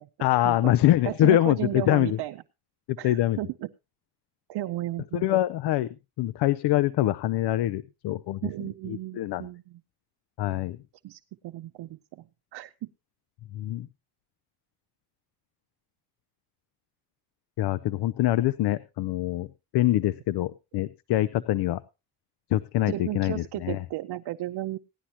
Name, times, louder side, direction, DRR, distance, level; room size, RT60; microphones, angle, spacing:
voice 1, 0.2-2.2 2.9-3.4 5.1-5.9 6.2-8.4 8.9-9.5 10.4-10.8 13.5-13.9 17.6-19.5 19.7-21.8 22.5-23.8, left 14 dB, 90° left, 14 dB, 0.6 m, -24 dB
voice 2, 1.0-2.4 3.0-3.7 4.5-5.2 8.4-9.8 11.0-12.2 12.5-12.9 22.9-24.8, right 15 dB, 85° right, 8 dB, 0.7 m, -34 dB
17.5 x 11.5 x 2.9 m, 0.27 s
cardioid pair, 125°, 39 cm